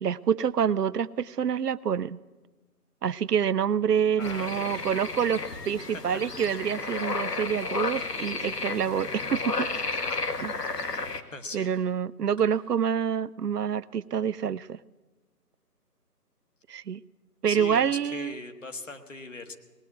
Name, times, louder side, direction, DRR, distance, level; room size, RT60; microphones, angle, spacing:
voice 1, 0.0-2.2 3.0-9.7 10.4-10.6 11.5-14.8 16.7-17.0 17.4-18.3, right 8 dB, 75° right, 19 dB, 0.6 m, -27 dB
sound 1, 4.2-11.2, left 3 dB, 75° left, 1.4 m, -32 dB
voice 2, 4.2-4.9 5.8-6.2 11.3-11.7 17.5-19.5, left 2 dB, 50° left, 7 dB, 1.4 m, -40 dB
19.0 x 9.0 x 8.4 m, 1.2 s
figure-of-eight pair, 165°, 48 cm